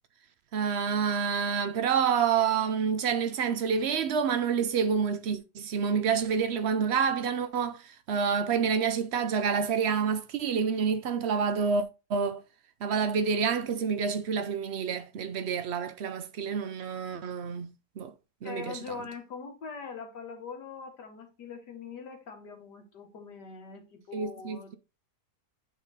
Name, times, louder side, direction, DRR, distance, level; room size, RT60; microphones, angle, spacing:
voice 1, 0.5-11.8 12.1-12.4 12.8-18.1 18.4-18.8 24.1-24.7, right 6 dB, 60° right, 0.7 m, -28 dB
voice 2, 18.4-24.8, left 5 dB, 85° left, 2.1 m, -42 dB
8.0 x 3.8 x 4.0 m
omnidirectional pair, 1.8 m